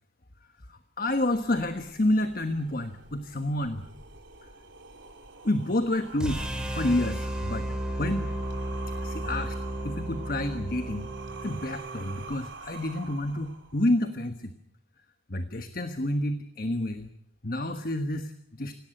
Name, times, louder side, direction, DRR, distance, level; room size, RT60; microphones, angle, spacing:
voice 1, 0.7-3.9 4.4-4.5 5.4-6.5 6.7-7.7 8.0-8.3 9.0-9.6 9.8-11.1 11.4-14.5 15.3-17.1 17.4-18.8, left 1 dB, 50° left, 9 dB, 1.3 m, -29 dB
sound 1, 1.1-14.1, right 4 dB, 80° right, 4.0 m, -47 dB
sound 2, 6.2-12.3, right 1 dB, 5° right, 4.2 m, -33 dB
25.5 x 17.5 x 9.0 m, 0.73 s
head